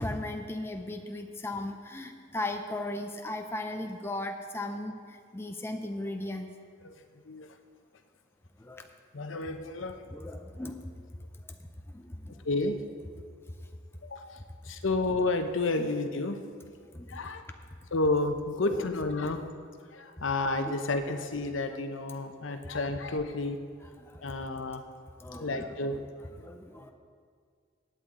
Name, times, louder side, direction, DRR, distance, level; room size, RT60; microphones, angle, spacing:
voice 1, 0.0-6.5 8.6-8.9 10.1-10.9 11.9-12.4 16.9-17.2 18.6-18.9 22.5-22.6 24.0-24.4 25.2-25.6 25.9-26.0 26.4-26.9, left 1 dB, 10° left, 4 dB, 0.5 m, -37 dB
voice 2, 6.8-7.5 9.1-10.0 12.4-12.8 14.0-16.4 17.1-17.4 17.9-19.4 19.9-23.6 24.2-24.8 25.4-25.9, left 2 dB, 75° left, 7 dB, 0.9 m, -31 dB
16.5 x 9.1 x 3.8 m, 2.1 s
head